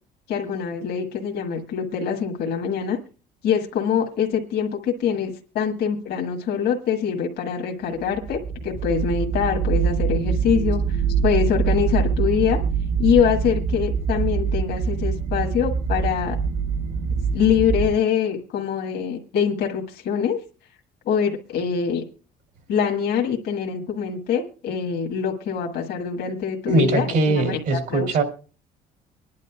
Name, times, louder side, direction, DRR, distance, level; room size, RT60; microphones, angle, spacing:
voice 1, 0.3-3.0 3.4-12.6 13.0-16.4 17.3-20.4 21.0-22.0 22.7-28.2, left 7 dB, 75° left, 1 dB, 1.6 m, -24 dB
sound 1, 8.0-18.0, right 6 dB, 60° right, 0.8 m, -24 dB
voice 2, 26.7-28.2, right 3 dB, 80° right, 4 dB, 2.8 m, -21 dB
24.5 x 10.5 x 2.3 m, 0.36 s
cardioid pair, 110°, 17 cm